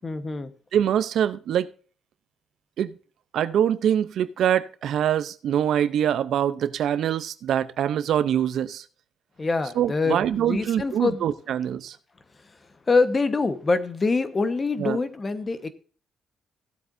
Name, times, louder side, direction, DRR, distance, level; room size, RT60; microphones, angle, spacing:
voice 1, 0.0-0.5 9.4-11.2 12.4-12.6 12.9-15.7, left 3 dB, 30° left, 11 dB, 1.1 m, -25 dB
voice 2, 0.7-1.7 2.8-3.0 3.3-8.8 9.8-12.0 14.8-15.0, right 10 dB, 70° right, 14 dB, 0.6 m, -24 dB
16.0 x 7.9 x 2.6 m, 0.39 s
cardioid pair, 90°, 0 cm